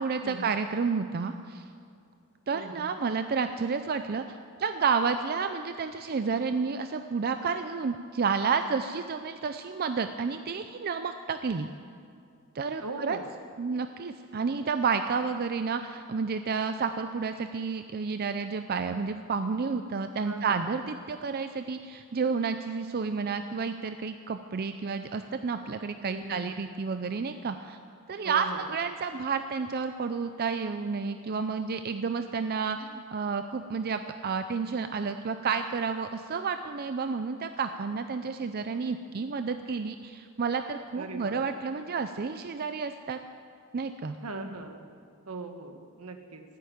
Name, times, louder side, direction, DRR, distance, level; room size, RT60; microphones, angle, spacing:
voice 1, 0.0-1.7 2.5-4.2 4.6-11.7 12.5-13.2 13.6-27.8 28.1-43.2 43.7-44.2, right 5 dB, 45° right, 8 dB, 0.5 m, -30 dB
voice 2, 2.5-2.9 12.8-13.3 20.2-20.7 26.1-26.5 28.2-28.7 40.9-41.4 44.2-44.9 45.2-46.4, right 2 dB, 75° right, 6 dB, 1.4 m, -39 dB
15.0 x 8.4 x 9.4 m, 2.4 s
head